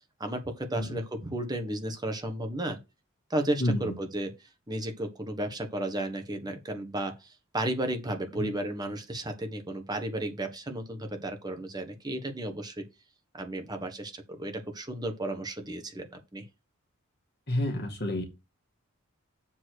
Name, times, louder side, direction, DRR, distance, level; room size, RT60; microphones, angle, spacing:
voice 1, 0.2-2.8 3.3-4.3 4.7-7.3 7.5-12.8 13.3-16.1 16.3-16.4, right 1 dB, 20° right, 1.5 m, -33 dB
voice 2, 3.6-4.0 8.3-8.5 17.5-18.2, left 1 dB, 50° left, 2.2 m, -29 dB
7.3 x 4.3 x 6.4 m
head